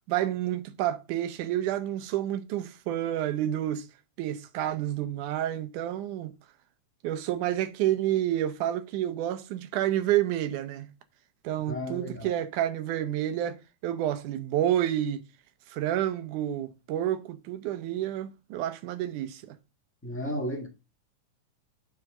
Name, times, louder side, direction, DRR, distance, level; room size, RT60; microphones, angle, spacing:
voice 1, 0.1-3.9 4.2-6.3 7.0-10.9 11.4-13.6 13.8-15.2 15.7-19.6, right 12 dB, 90° right, 2.4 m, -29 dB
voice 2, 11.7-12.3 20.0-20.7, equal, 10° left, 0.6 m, -33 dB
9.4 x 3.6 x 6.4 m
omnidirectional pair, 3.5 m